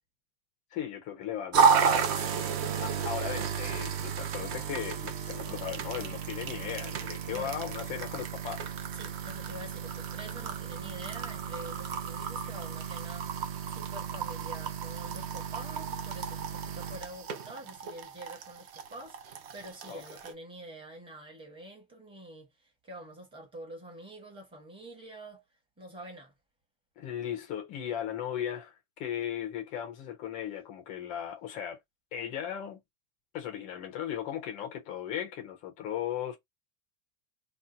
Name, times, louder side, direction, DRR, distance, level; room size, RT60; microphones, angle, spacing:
voice 1, 0.7-2.1 2.8-8.6 19.9-20.0 27.0-31.8 32.1-32.8 33.3-36.4, left 10 dB, 20° left, 0.3 m, -37 dB
sound 1, 1.5-20.3, right 6 dB, 40° right, 0.6 m, -32 dB
voice 2, 2.1-2.6 7.3-7.5 8.9-25.4 25.8-26.3, right 1 dB, 10° right, 1.0 m, -47 dB
2.8 x 2.1 x 3.7 m
supercardioid pair, 155°, 46 cm